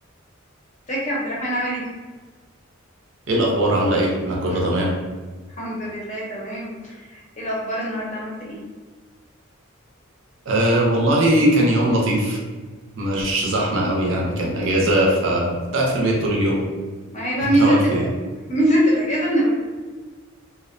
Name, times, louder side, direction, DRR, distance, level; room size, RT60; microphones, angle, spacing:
voice 1, 0.9-1.8 4.5-4.6 5.6-8.6 17.1-18.1 18.5-19.5, right 1 dB, 35° left, -5 dB, 0.6 m, -23 dB
voice 2, 3.3-4.9 10.5-12.4 13.0-16.6 17.6-18.1, right 1 dB, 60° right, -2 dB, 0.5 m, -20 dB
2.4 x 2.1 x 2.5 m, 1.4 s
head